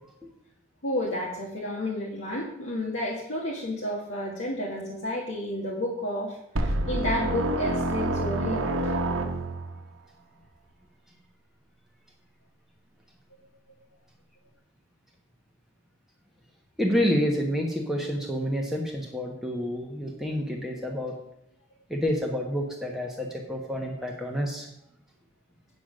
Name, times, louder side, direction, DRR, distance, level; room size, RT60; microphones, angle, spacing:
voice 1, 0.8-8.9, left 1 dB, 70° left, -4 dB, 1.7 m, -31 dB
sound 1, 6.6-9.8, right 2 dB, 80° right, 1.0 m, -27 dB
voice 2, 16.8-21.1 21.9-24.7, equal, ahead, -1 dB, 1.1 m, -28 dB
9.0 x 5.6 x 6.5 m, 0.76 s
head